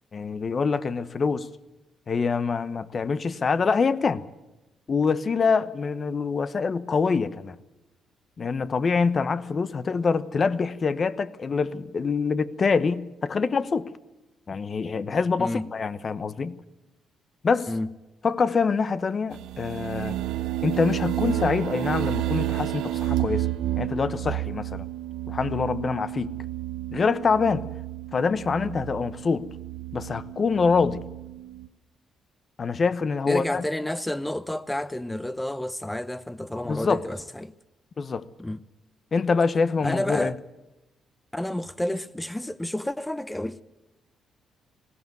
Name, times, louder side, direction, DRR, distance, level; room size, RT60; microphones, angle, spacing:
voice 1, 0.1-1.5 2.1-4.2 4.9-7.6 8.4-13.9 14.5-16.6 17.4-17.7 18.2-20.2 20.6-23.5 23.8-24.9 25.3-26.3 26.9-27.7 28.1-29.5 29.9-31.0 32.6-33.6 36.6-37.0 38.0-38.2 39.1-40.3, left 5 dB, 40° left, 0.9 m, -25 dB
voice 2, 15.4-15.7 17.7-17.9 33.3-37.5 38.4-38.6 39.8-40.4 41.3-43.6, left 1 dB, 10° left, 0.7 m, -30 dB
sound 1, 19.3-31.7, right 14 dB, 90° right, 1.0 m, -31 dB
20.5 x 16.5 x 9.4 m
cardioid pair, 90°, 0 cm